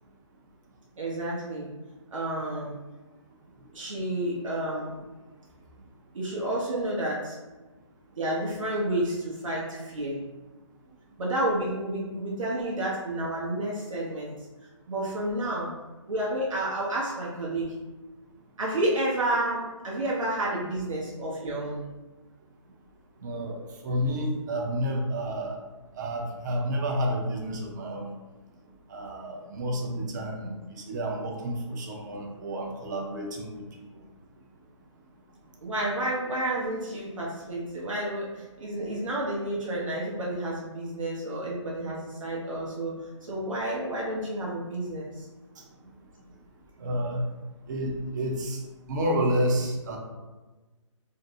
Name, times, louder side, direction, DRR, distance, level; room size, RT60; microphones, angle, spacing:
voice 1, 1.0-1.7 2.1-2.8 3.7-4.9 6.1-7.4 8.2-10.2 11.2-14.3 14.9-15.7 16.1-17.8 18.6-21.8 35.6-45.3, right 1 dB, 85° right, -5 dB, 0.6 m, -30 dB
voice 2, 23.2-25.6 26.0-28.1 28.9-33.6 46.8-47.2 47.7-48.6 48.9-50.0, equal, 35° right, 0 dB, 0.5 m, -30 dB
2.5 x 2.0 x 2.6 m, 1.2 s
figure-of-eight pair, 145°, 16 cm